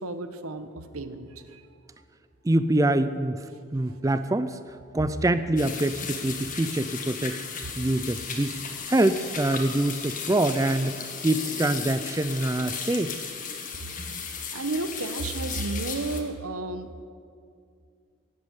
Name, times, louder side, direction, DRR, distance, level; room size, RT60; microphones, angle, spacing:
voice 1, 0.0-1.6 3.9-4.0 13.7-13.9 14.5-16.9, right 2 dB, 85° right, 10 dB, 1.2 m, -32 dB
voice 2, 2.4-3.5 3.7-8.6 8.9-13.2, right 1 dB, 15° right, 12 dB, 0.4 m, -25 dB
sound 1, 5.6-16.2, left 6 dB, 40° left, 1.9 m, -35 dB
16.5 x 8.7 x 9.8 m, 2.3 s
head